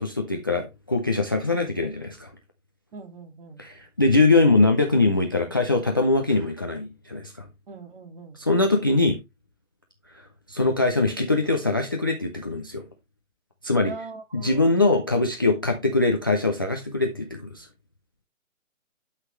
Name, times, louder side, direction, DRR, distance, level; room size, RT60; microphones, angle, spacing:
voice 1, 0.0-2.3 3.6-7.5 8.4-9.2 10.5-12.8 13.6-13.9 14.3-17.7, left 3 dB, 15° left, 0.5 m, -22 dB
voice 2, 2.9-3.6 7.7-8.4 13.9-14.7, right 3 dB, 40° right, 2.5 m, -41 dB
11.5 x 5.8 x 3.0 m
figure-of-eight pair, 145°, 42 cm